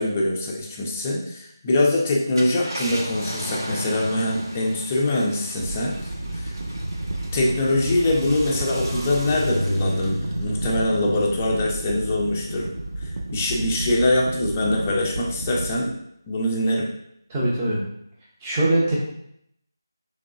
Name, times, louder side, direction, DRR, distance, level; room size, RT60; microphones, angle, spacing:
voice 1, 0.0-6.5 7.3-12.7 13.0-15.9 16.3-16.9, left 1 dB, 20° left, -2 dB, 0.5 m, -23 dB
Car, 2.2-13.0 13.5-13.6 15.7-15.9, equal, 75° right, 0.9 m, -33 dB
sound 1, 5.6-15.8, right 2 dB, 55° right, 0.3 m, -31 dB
voice 2, 17.3-17.8 18.4-19.0, right 1 dB, 15° right, -6 dB, 0.8 m, -21 dB
3.6 x 3.2 x 2.6 m, 0.75 s
figure-of-eight pair, 165°, 2 cm